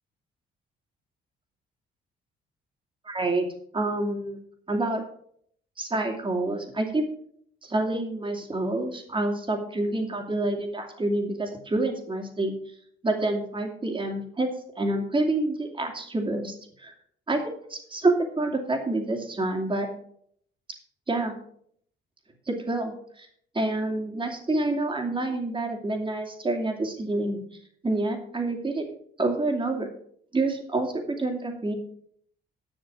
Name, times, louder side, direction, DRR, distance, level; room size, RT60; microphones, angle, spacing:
voice 1, 3.1-3.5 3.7-4.4 4.7-5.0 5.8-7.0 7.6-12.5 13.0-14.5 14.8-16.9 17.3-19.9 21.1-21.3 22.5-23.3 23.5-27.4 27.8-28.9 29.2-29.9 30.3-31.7, right 2 dB, 25° right, 3 dB, 2.6 m, -27 dB
10.5 x 6.8 x 6.1 m, 0.65 s
cardioid pair, 90°, 20 cm